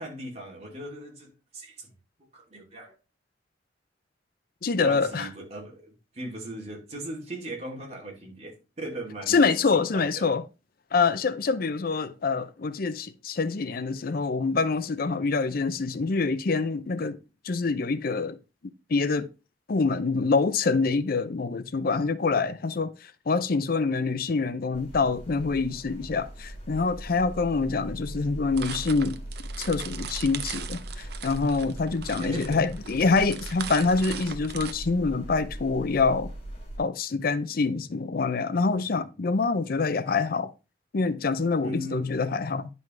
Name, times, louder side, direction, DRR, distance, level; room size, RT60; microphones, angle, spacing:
voice 1, 0.0-1.9 2.3-2.9 4.8-9.4 9.7-10.3 32.2-32.6 41.6-42.1, right 1 dB, 35° right, 2.8 m, -38 dB
voice 2, 4.6-5.3 9.3-10.4 10.9-17.2 17.4-18.4 18.9-19.3 19.7-22.9 23.3-29.2 29.6-36.3 36.8-40.5 40.9-42.7, left 4 dB, 55° left, 0.5 m, -26 dB
sound 1, 24.7-36.8, right 1 dB, 35° left, 2.9 m, -40 dB
sound 2, 28.6-34.7, right 8 dB, 60° right, 0.7 m, -39 dB
10.5 x 5.4 x 3.2 m
head